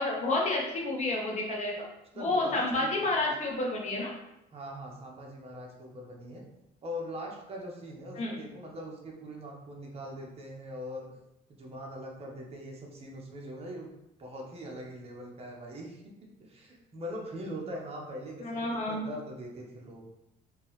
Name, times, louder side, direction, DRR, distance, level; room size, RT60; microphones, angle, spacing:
voice 1, 0.0-1.9 2.1-4.1 8.2-8.4 18.4-19.0, left 2 dB, 45° left, -2 dB, 1.1 m, -30 dB
voice 2, 2.1-3.1 4.5-6.4 6.8-11.1 11.5-13.9 14.2-16.0 16.4-20.0, equal, 35° right, -1 dB, 0.9 m, -42 dB
3.7 x 2.8 x 3.1 m, 0.87 s
cardioid pair, 110°, 17 cm